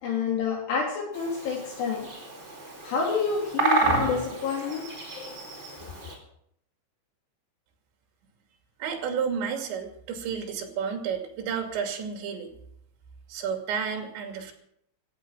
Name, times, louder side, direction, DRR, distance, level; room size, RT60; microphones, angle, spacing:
voice 1, 0.0-2.1 2.8-4.9 5.2-5.4 6.0-6.2, left 5 dB, 60° left, 0 dB, 4.3 m, -28 dB
Bird vocalization bird call bird song, 1.1-6.1, right 4 dB, 15° right, 3.7 m, -31 dB
voice 2, 8.8-12.5 13.3-14.5, right 7 dB, 65° right, 4 dB, 4.6 m, -31 dB
17.5 x 12.5 x 6.2 m, 0.71 s
omnidirectional pair, 5.8 m